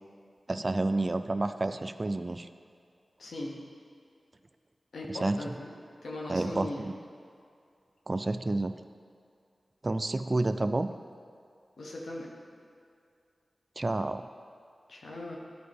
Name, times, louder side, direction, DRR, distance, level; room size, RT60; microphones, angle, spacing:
voice 1, 0.5-2.5 5.1-5.4 6.3-6.9 8.1-8.8 9.8-10.9 13.8-14.2, right 2 dB, 45° right, 11 dB, 0.3 m, -29 dB
voice 2, 3.2-3.6 4.9-5.7 6.0-6.9 11.8-12.3 14.9-15.4, left 1 dB, 85° left, -2 dB, 1.1 m, -39 dB
11.0 x 4.7 x 3.4 m, 2.4 s
cardioid pair, 40°, 0 cm